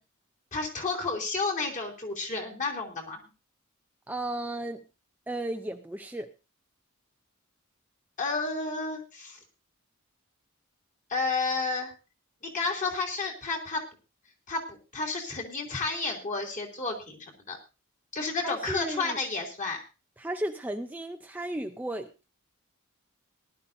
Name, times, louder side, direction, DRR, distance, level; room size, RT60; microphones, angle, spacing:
voice 1, 0.5-3.3 8.2-9.4 11.1-11.9 12.4-13.8 14.5-17.6 18.1-19.8, left 3 dB, 35° left, 0 dB, 2.9 m, -31 dB
voice 2, 4.1-4.8 5.3-6.3 18.4-19.2 20.2-22.1, right 1 dB, 10° right, 6 dB, 0.5 m, -34 dB
19.0 x 11.5 x 2.7 m, 0.30 s
head